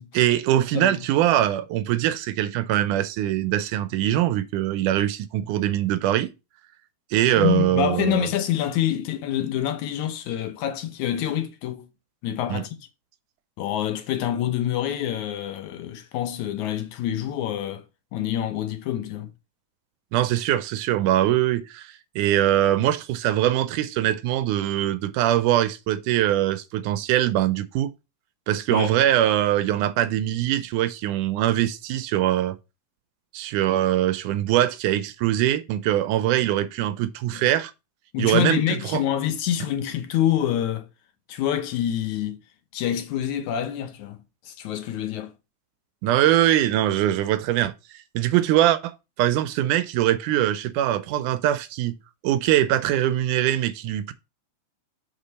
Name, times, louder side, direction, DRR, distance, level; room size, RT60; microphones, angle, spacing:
voice 1, 0.1-6.3 7.1-8.3 12.5-12.6 20.1-27.9 28.5-32.6 33.3-37.7 38.2-39.0 46.0-52.0 52.2-54.1, right 13 dB, 85° right, 2.1 m, -22 dB
voice 2, 7.4-11.9 12.2-12.8 13.6-17.8 18.1-19.3 28.7-28.9 37.3-37.4 38.1-40.9 41.3-42.4 42.7-44.2 44.5-45.3, left 11 dB, 75° left, 2.1 m, -26 dB
6.9 x 5.1 x 4.1 m
omnidirectional pair, 3.6 m